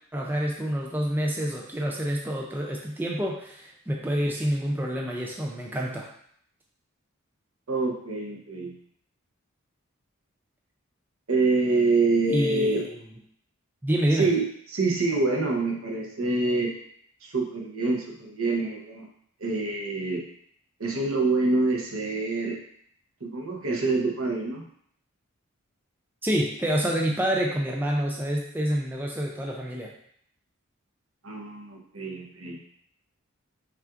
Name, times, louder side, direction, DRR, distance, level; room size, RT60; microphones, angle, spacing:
voice 1, 0.1-6.1 12.3-12.9 13.8-14.3 26.2-29.9, equal, 10° right, -1 dB, 0.4 m, -27 dB
voice 2, 7.7-8.7 11.3-12.8 14.1-16.8 17.2-19.1 19.4-20.2 20.8-22.6 23.2-24.7 31.2-32.6, right 3 dB, 80° right, 0 dB, 0.8 m, -26 dB
5.7 x 2.4 x 2.4 m, 0.66 s
head